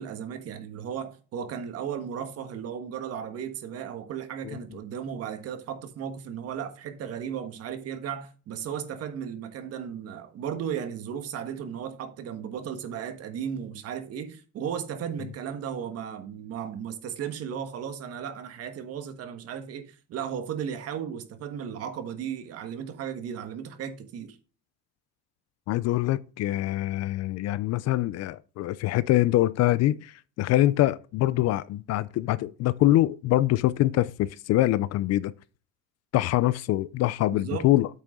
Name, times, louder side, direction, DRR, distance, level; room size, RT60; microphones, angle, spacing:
voice 1, 0.0-24.4 37.3-37.7, right 8 dB, 55° right, 1.4 m, -35 dB
voice 2, 25.7-35.3 36.1-37.9, left 15 dB, 55° left, 0.5 m, -24 dB
8.4 x 6.5 x 3.7 m
cardioid pair, 160°, 30 cm